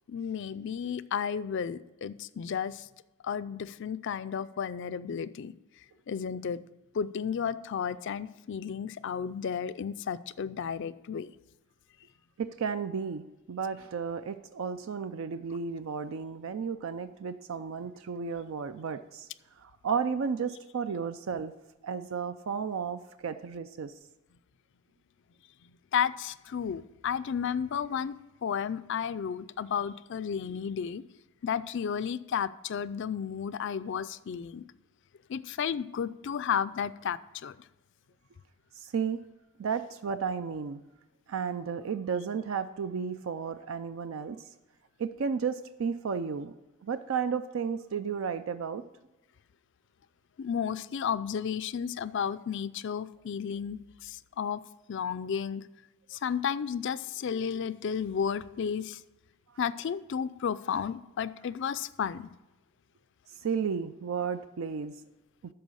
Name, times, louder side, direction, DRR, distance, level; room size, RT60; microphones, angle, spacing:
voice 1, 0.1-2.9 3.2-5.5 6.1-6.6 6.9-11.3 25.9-28.2 28.4-31.0 31.4-34.6 35.3-37.6 50.4-54.6 54.9-55.6 56.1-59.0 59.6-62.3, left 7 dB, 60° left, 15 dB, 0.4 m, -33 dB
voice 2, 12.4-19.3 19.6-21.5 21.8-23.9 38.8-39.2 39.6-40.8 41.3-44.4 45.0-46.5 46.8-48.8 63.4-64.9, right 6 dB, 75° right, 11 dB, 0.4 m, -33 dB
12.5 x 4.7 x 6.3 m, 1.0 s
head